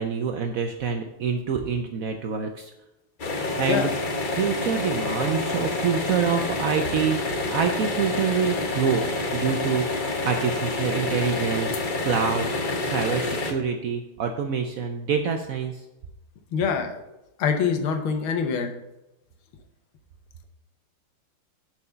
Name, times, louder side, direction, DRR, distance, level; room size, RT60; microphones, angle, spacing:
voice 1, 0.0-2.7 3.4-3.9 4.3-9.0 9.3-9.9 10.2-12.5 12.8-15.8, right 6 dB, 85° right, 5 dB, 0.7 m, -26 dB
sound 1, 3.2-13.5, left 2 dB, 65° left, 0.5 m, -28 dB
voice 2, 3.6-4.0 16.5-17.0 17.4-18.7, left 6 dB, 90° left, 5 dB, 1.8 m, -25 dB
7.0 x 4.8 x 6.7 m, 0.93 s
omnidirectional pair, 2.2 m